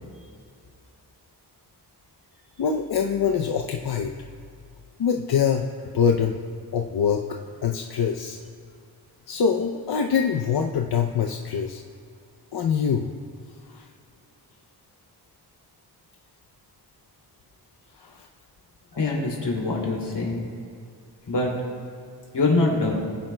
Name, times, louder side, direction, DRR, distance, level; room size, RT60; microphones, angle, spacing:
voice 1, 2.6-4.1 5.0-5.7 5.9-6.4 6.7-8.4 9.3-11.8 12.5-13.1 13.7-13.9 18.0-18.3, left 7 dB, 70° left, 4 dB, 0.6 m, -24 dB
voice 2, 18.9-20.4 21.3-21.5 22.3-22.9, left 3 dB, 85° left, -2 dB, 2.6 m, -24 dB
19.5 x 10.0 x 2.2 m, 2.4 s
wide cardioid pair, 120°, 40 cm